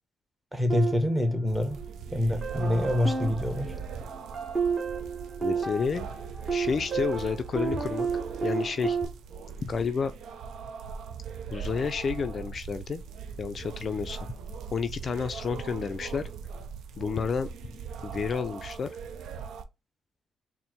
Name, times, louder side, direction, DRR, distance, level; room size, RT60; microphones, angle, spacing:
voice 1, 0.5-1.8 2.1-3.7, left 1 dB, 5° right, 0.9 m, -26 dB
sound 1, 0.7-2.0 2.4-9.0, right 5 dB, 30° right, 1.5 m, -32 dB
sound 2, 1.5-19.6, right 6 dB, 75° right, 0.5 m, -40 dB
voice 2, 5.4-6.1 6.5-8.1 8.4-9.0 9.6-10.1 11.5-13.0 13.4-14.2 14.7-16.3 17.0-17.5 18.0-19.0, left 5 dB, 45° left, 0.3 m, -30 dB
4.2 x 2.0 x 4.3 m
cardioid pair, 90°, 0 cm